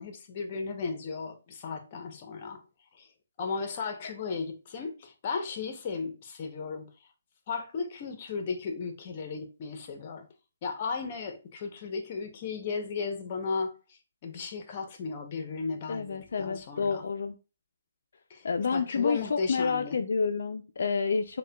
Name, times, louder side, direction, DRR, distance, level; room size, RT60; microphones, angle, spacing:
voice 1, 0.0-2.6 2.9-3.1 3.4-7.1 7.5-10.3 10.6-17.0 18.3-20.0, left 4 dB, 40° left, 0.7 m, -35 dB
voice 2, 15.9-17.3 18.4-21.4, left 5 dB, 70° left, 0.3 m, -29 dB
6.2 x 2.2 x 2.2 m
hypercardioid pair, 150°, 0 cm